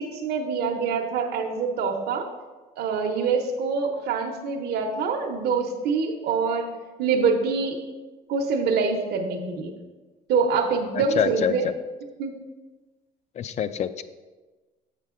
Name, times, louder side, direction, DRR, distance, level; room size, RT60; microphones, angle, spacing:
voice 1, 0.0-2.3 2.8-6.7 7.0-7.8 8.3-9.7 10.3-11.6 12.2-12.3, right 5 dB, 75° right, 2 dB, 0.8 m, -25 dB
voice 2, 10.9-11.7 13.4-14.0, left 8 dB, 40° left, 12 dB, 0.4 m, -26 dB
6.7 x 6.5 x 3.7 m, 1.3 s
cardioid pair, 110°, 17 cm